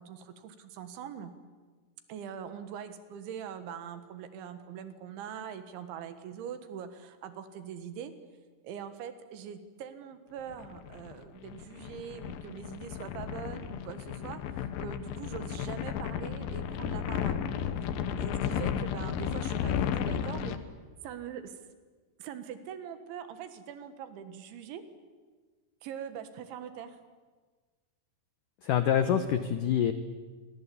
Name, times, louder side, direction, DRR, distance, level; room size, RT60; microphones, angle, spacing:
voice 1, 0.0-1.3 2.1-8.1 8.6-17.5 18.2-20.6 21.0-21.6 22.2-24.8 25.8-27.0, right 8 dB, 80° right, 10 dB, 4.0 m, -42 dB
sound 1, 10.5-20.6, left 8 dB, 65° left, 2.5 m, -34 dB
voice 2, 28.6-29.9, left 9 dB, 85° left, 10 dB, 1.9 m, -26 dB
28.0 x 24.5 x 8.6 m, 1.4 s
omnidirectional pair, 5.4 m